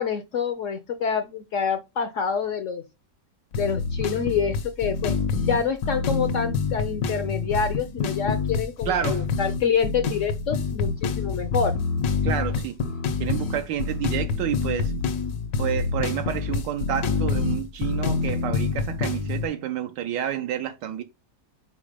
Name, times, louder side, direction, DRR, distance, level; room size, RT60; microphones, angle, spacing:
voice 1, 0.0-2.8 3.6-5.2 5.4-11.7, left 6 dB, 65° left, 0.8 m, -27 dB
sound 1, 3.5-19.5, left 4 dB, 80° left, 1.6 m, -27 dB
voice 2, 8.9-9.3 12.2-12.8 13.2-14.9 15.6-21.0, right 10 dB, 80° right, 1.3 m, -29 dB
5.2 x 4.6 x 5.0 m
omnidirectional pair, 1.9 m